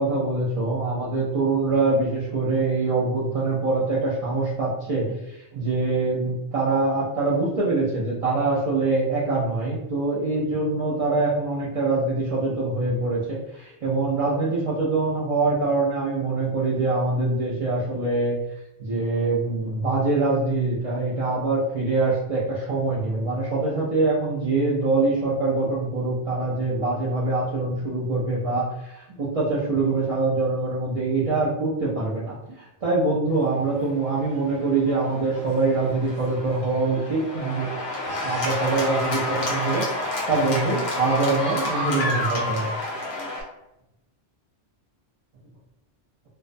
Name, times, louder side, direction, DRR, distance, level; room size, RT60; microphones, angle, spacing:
voice 1, 0.0-18.4 18.8-37.8 38.0-42.7, right 3 dB, 60° right, -8 dB, 0.3 m, -24 dB
Cheering / Applause, 33.7-43.4, left 1 dB, 55° left, 0.7 m, -29 dB
2.3 x 2.1 x 2.5 m, 0.89 s
omnidirectional pair, 1.2 m